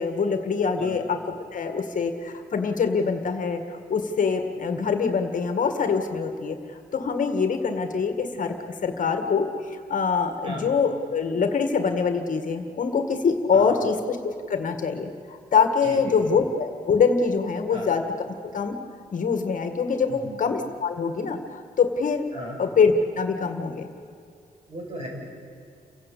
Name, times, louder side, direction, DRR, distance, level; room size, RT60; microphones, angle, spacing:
voice 1, 0.0-6.6 6.9-8.6 8.8-18.0 18.5-18.8 19.1-22.3 22.6-23.9, left 5 dB, 55° left, 6 dB, 1.9 m, -24 dB
voice 2, 13.5-13.9 15.8-16.3 17.7-17.9 20.1-20.4 22.3-22.6 24.7-25.1, equal, 35° right, -1 dB, 6.6 m, -36 dB
29.5 x 17.0 x 8.5 m, 2.5 s
wide cardioid pair, 170°, 16 cm